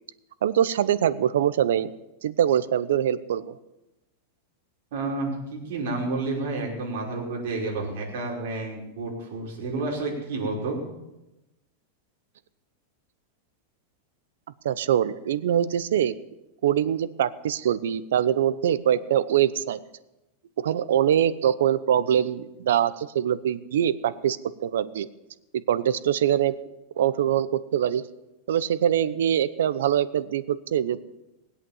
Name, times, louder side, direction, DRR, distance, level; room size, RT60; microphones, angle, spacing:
voice 1, 0.4-1.9 2.2-3.6 14.6-16.2 16.6-19.8 20.6-24.4 24.6-25.1 25.5-26.6 27.0-28.0 28.5-31.0, right 10 dB, 90° right, 16 dB, 0.8 m, -23 dB
voice 2, 4.9-10.8, right 3 dB, 55° right, -2 dB, 5.3 m, -30 dB
20.0 x 8.4 x 7.3 m, 0.95 s
supercardioid pair, 180°, 0 cm